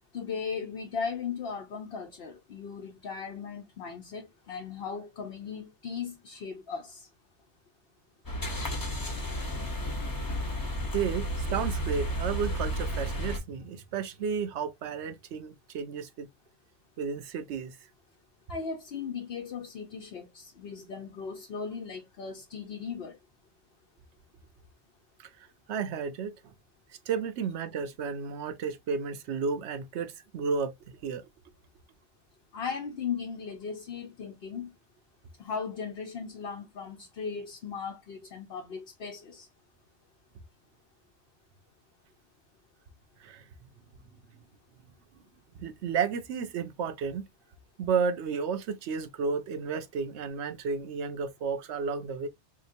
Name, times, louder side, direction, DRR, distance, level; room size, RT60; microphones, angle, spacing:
voice 1, 0.1-7.1 18.5-23.2 32.5-34.7 35.4-39.5, left 6 dB, 60° left, 0.9 m, -37 dB
sound 1, 8.3-13.4, equal, 20° left, 0.7 m, -32 dB
voice 2, 10.9-16.3 17.0-17.8 25.7-26.3 27.1-30.7 31.0-31.2 43.2-43.4 45.5-47.3 47.8-52.3, right 6 dB, 75° right, 0.9 m, -32 dB
3.7 x 2.9 x 2.6 m
omnidirectional pair, 1.2 m